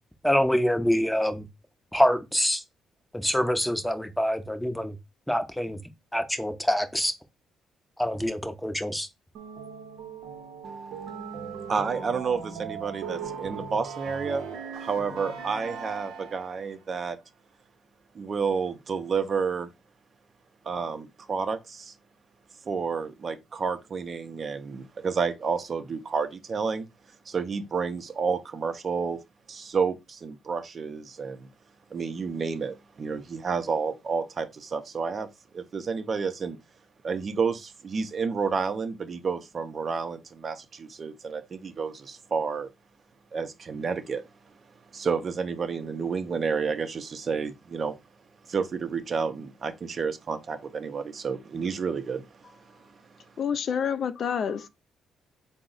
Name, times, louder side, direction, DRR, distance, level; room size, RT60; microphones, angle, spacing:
voice 1, 0.2-1.5 1.9-2.6 3.1-5.0 5.3-5.8 6.1-7.1 8.0-9.1, equal, 5° left, 0.6 m, -25 dB
sound 1, 9.3-16.6, right 6 dB, 85° right, 0.6 m, -38 dB
voice 2, 11.7-14.4 14.8-17.2 18.1-19.7 20.6-21.9 22.7-26.9 27.3-29.2 29.5-31.5 31.9-35.3 35.5-36.6 37.0-42.7 43.3-44.2 44.9-48.0 48.5-52.5, right 5 dB, 45° right, 0.5 m, -30 dB
voice 3, 53.4-54.7, left 7 dB, 55° left, 0.3 m, -28 dB
3.8 x 2.0 x 3.7 m
cardioid pair, 75°, 0 cm